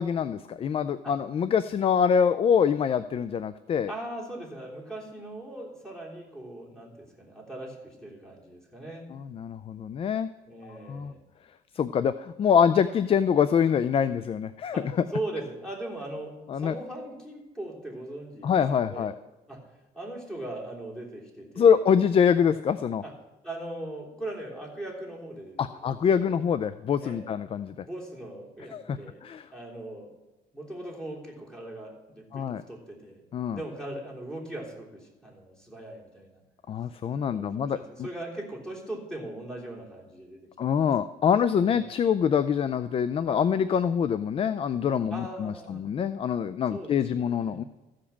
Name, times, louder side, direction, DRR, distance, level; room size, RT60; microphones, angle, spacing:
voice 1, 0.0-3.9 9.1-10.3 10.6-11.1 11.8-14.9 16.5-16.7 18.4-19.1 21.6-23.0 25.6-27.8 28.7-29.4 32.3-32.6 33.3-33.6 36.7-38.1 40.6-47.6, left 7 dB, 35° left, 13 dB, 0.4 m, -25 dB
voice 2, 3.9-9.1 10.4-11.2 14.7-19.1 19.5-19.6 19.9-21.8 23.0-23.1 23.4-25.9 26.2-26.4 27.0-27.2 27.8-29.2 29.5-30.1 30.5-33.2 33.5-36.4 37.2-40.5 41.7-41.8 43.7-43.8 45.1-45.8 46.7-47.6, right 1 dB, 5° left, -4 dB, 3.3 m, -39 dB
14.5 x 5.1 x 7.1 m, 1.1 s
cardioid pair, 110°, 17 cm